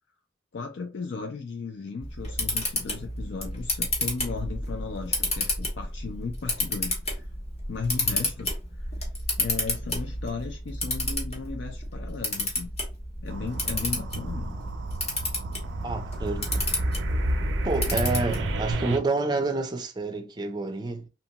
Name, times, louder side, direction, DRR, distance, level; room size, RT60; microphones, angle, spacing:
voice 1, 0.5-7.3 7.7-8.5 8.8-8.9 9.4-12.7 13.2-14.6, left 4 dB, 70° left, 0.4 m, -36 dB
Camera, 2.0-18.7, left 1 dB, 35° left, 1.1 m, -31 dB
sound 1, 13.3-19.0, right 2 dB, 90° right, 0.4 m, -32 dB
voice 2, 15.8-16.7 17.6-21.1, right 3 dB, 25° right, 0.4 m, -29 dB
2.9 x 2.2 x 2.8 m
head